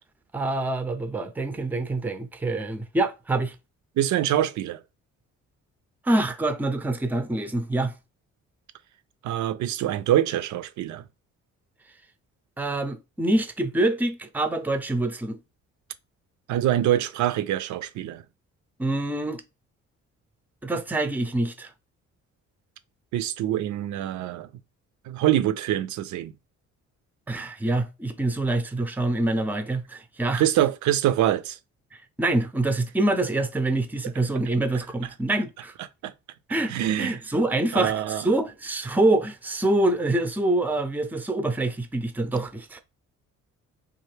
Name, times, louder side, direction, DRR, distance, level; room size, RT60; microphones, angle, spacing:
voice 1, 0.3-3.5 6.0-7.9 12.6-15.4 18.8-19.4 20.6-21.7 27.3-30.4 31.9-35.7 36.5-42.8, right 2 dB, 5° right, 0.5 m, -26 dB
voice 2, 4.0-4.8 9.2-11.0 16.5-18.2 23.1-24.5 25.1-26.3 30.3-31.6 36.0-36.1 36.7-37.2 37.7-38.2, right 12 dB, 70° right, 0.5 m, -24 dB
3.2 x 2.5 x 3.2 m
cardioid pair, 90°, 30 cm